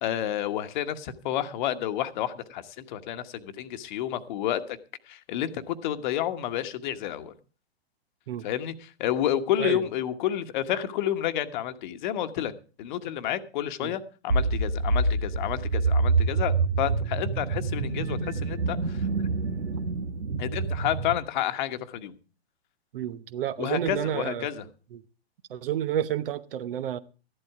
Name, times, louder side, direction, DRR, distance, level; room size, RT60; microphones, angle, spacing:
voice 1, 0.0-4.8 5.1-7.3 8.4-12.5 12.8-19.1 20.4-22.2 23.6-24.6, left 11 dB, 45° left, 1.2 m, -30 dB
sound 1, 14.3-21.2, right 3 dB, 85° right, 1.3 m, -26 dB
voice 2, 22.9-24.5 24.9-25.0 25.5-27.0, right 10 dB, 55° right, 0.9 m, -30 dB
13.5 x 11.5 x 4.7 m
hypercardioid pair, 120°, 33 cm